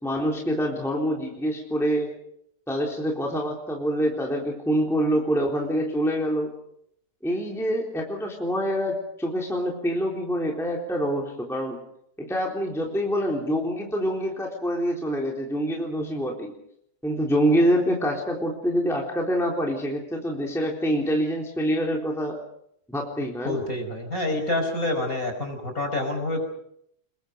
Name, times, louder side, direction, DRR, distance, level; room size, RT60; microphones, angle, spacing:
voice 1, 0.0-2.1 2.7-6.5 7.2-11.8 12.2-16.5 17.0-22.4 22.9-23.6, equal, ahead, -1 dB, 3.5 m, -26 dB
voice 2, 23.4-26.4, left 2 dB, 25° left, 5 dB, 5.6 m, -27 dB
29.5 x 22.0 x 5.3 m, 0.71 s
omnidirectional pair, 3.5 m